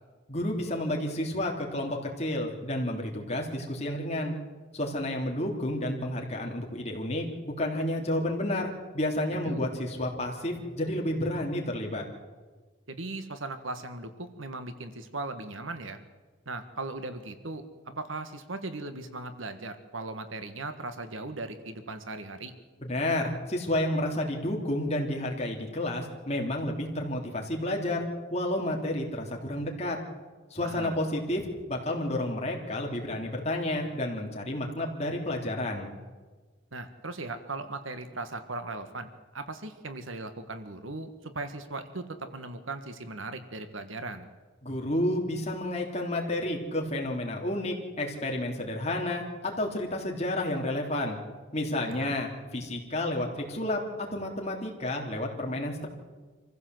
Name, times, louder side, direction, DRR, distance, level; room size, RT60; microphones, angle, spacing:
voice 1, 0.3-4.4 4.7-12.0 22.8-30.0 30.5-35.9 44.6-51.2 51.5-55.9, left 1 dB, 35° left, 0 dB, 3.5 m, -31 dB
voice 2, 12.9-16.0 16.4-22.5 30.6-31.0 36.7-44.3 51.8-52.1, right 2 dB, 80° right, 9 dB, 1.6 m, -38 dB
26.0 x 15.5 x 7.9 m, 1.4 s
head